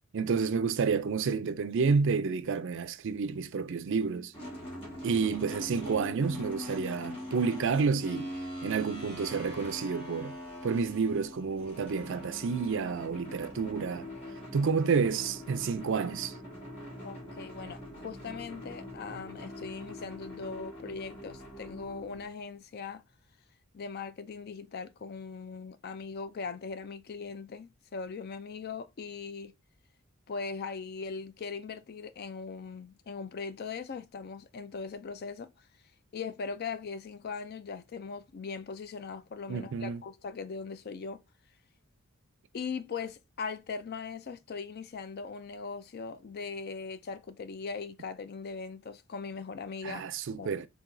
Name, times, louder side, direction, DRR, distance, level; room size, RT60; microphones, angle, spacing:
voice 1, 0.1-4.3 5.0-8.3 8.6-10.4 10.6-14.1 14.5-16.3 39.5-40.0 49.8-50.7, right 5 dB, 60° right, 0.4 m, -30 dB
sound 1, 4.3-22.2, left 1 dB, 25° left, 2.1 m, -43 dB
voice 2, 17.0-23.0 23.7-29.5 30.3-35.5 36.1-41.2 42.5-50.0 50.4-50.5, left 5 dB, 45° left, 0.4 m, -40 dB
4.8 x 2.8 x 2.6 m
head